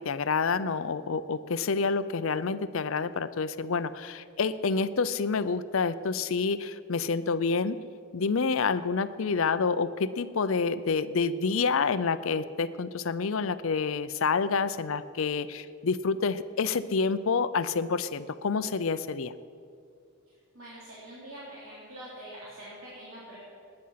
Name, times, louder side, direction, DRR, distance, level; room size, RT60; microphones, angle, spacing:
voice 1, 0.0-7.8 8.1-19.3, left 5 dB, 65° left, 14 dB, 0.5 m, -28 dB
voice 2, 20.6-23.4, right 1 dB, 65° right, -8 dB, 3.5 m, -44 dB
19.0 x 9.8 x 5.7 m, 2.4 s
head